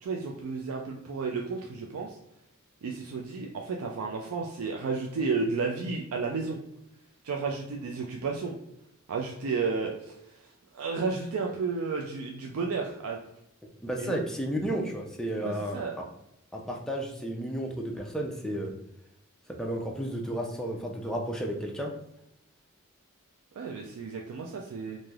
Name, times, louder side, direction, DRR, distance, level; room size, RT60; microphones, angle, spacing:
voice 1, 0.0-2.2 2.8-6.6 7.2-8.6 9.1-10.4 10.7-13.2 14.0-14.2 15.4-16.0 23.6-25.0, right 4 dB, 85° right, 1 dB, 0.4 m, -32 dB
voice 2, 13.8-15.8 16.5-18.7 19.6-21.9, right 1 dB, 5° left, 0 dB, 0.4 m, -32 dB
3.2 x 2.6 x 2.3 m, 0.82 s
head